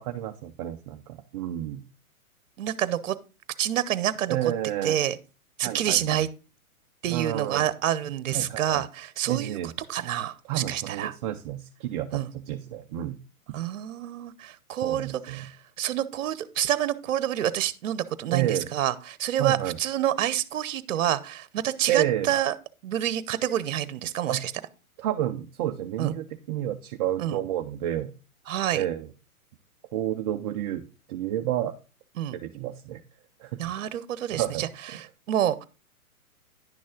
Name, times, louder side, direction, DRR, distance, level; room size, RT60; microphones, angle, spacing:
voice 1, 0.0-1.8 4.3-5.0 5.6-6.2 7.1-7.7 8.3-8.8 9.3-9.7 10.5-13.2 13.5-13.6 14.8-15.4 18.3-18.7 19.4-19.8 21.9-22.3 24.3-24.4 25.0-28.1 28.7-29.1 29.9-31.8 32.3-33.0 33.4-33.7 34.3-34.7, right 12 dB, 30° right, 4 dB, 0.5 m, -30 dB
voice 2, 2.6-3.2 3.6-4.4 4.8-5.2 5.6-6.3 7.0-11.1 12.1-12.3 13.5-15.5 15.8-22.5 22.8-24.5 26.0-26.1 27.2-27.4 28.5-28.8 32.2-32.4 33.6-34.7 34.9-35.6, right 11 dB, 60° right, 17 dB, 0.9 m, -28 dB
10.5 x 6.2 x 3.7 m, 0.32 s
hypercardioid pair, 120°, 44 cm